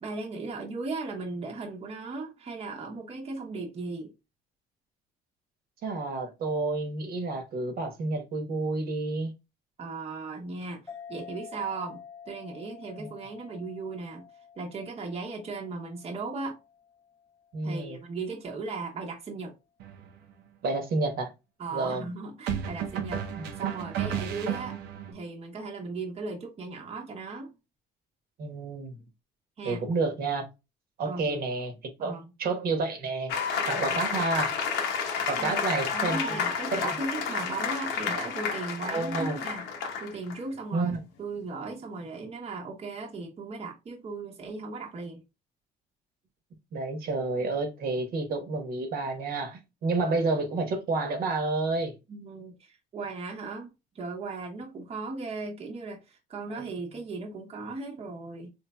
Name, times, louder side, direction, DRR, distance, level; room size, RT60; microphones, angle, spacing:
voice 1, 0.0-4.1 9.8-10.8 11.1-14.2 14.6-16.6 17.6-19.6 21.6-23.2 23.6-24.8 25.1-27.5 29.6-29.8 31.0-31.4 32.0-32.3 33.6-34.0 35.4-35.6 35.9-39.6 40.0-40.9 41.2-45.2 52.1-58.5, right 3 dB, 35° right, 0.9 m, -37 dB
voice 2, 5.8-9.3 13.0-13.1 17.5-18.0 20.6-21.3 21.7-22.0 23.4-23.5 28.4-29.0 29.6-30.4 31.0-31.7 32.0-33.3 33.6-34.5 35.3-36.4 36.8-37.0 38.9-39.4 40.7-41.0 46.7-52.0 56.5-56.7, right 3 dB, 65° right, 1.1 m, -30 dB
sound 1, 10.9-17.9, left 7 dB, 15° left, 0.6 m, -49 dB
sound 2, 19.8-20.0 22.5-25.1, right 9 dB, 85° right, 0.8 m, -32 dB
sound 3, 33.3-40.4, left 6 dB, 85° left, 0.9 m, -30 dB
4.2 x 3.2 x 2.2 m
cardioid pair, 110°, 17 cm